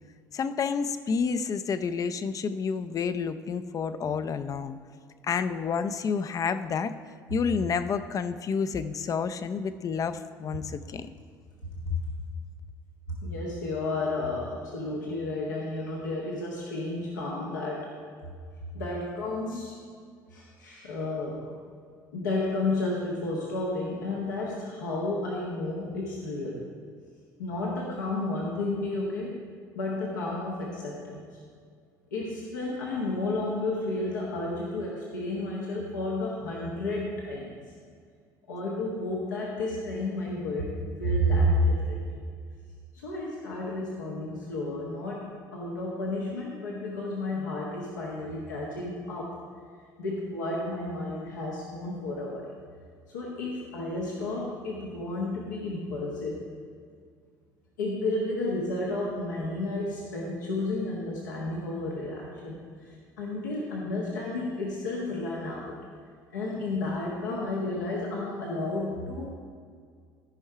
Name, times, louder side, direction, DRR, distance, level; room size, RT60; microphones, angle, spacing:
voice 1, 0.3-4.8 5.2-6.9 7.3-11.1, left 6 dB, 35° left, 11 dB, 0.5 m, -29 dB
voice 2, 13.1-17.9 18.7-19.8 20.3-21.6 22.1-26.7 27.4-29.4 29.7-31.2 32.1-37.5 38.5-42.2 43.0-49.4 50.0-52.5 53.1-56.4 57.8-65.7 66.3-69.3, left 2 dB, 80° left, -4 dB, 1.3 m, -31 dB
14.0 x 5.5 x 4.7 m, 2.1 s
figure-of-eight pair, 60°, 10 cm